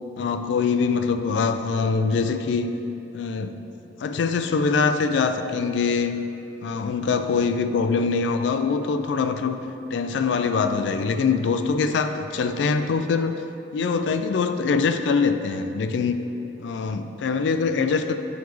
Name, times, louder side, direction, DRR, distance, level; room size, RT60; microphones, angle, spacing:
voice 1, 0.2-2.7 3.1-3.6 4.0-6.2 6.6-9.6 9.9-13.3 13.7-16.2 16.6-18.2, left 5 dB, 80° left, 9 dB, 0.3 m, -23 dB
7.2 x 4.6 x 3.1 m, 2.9 s
head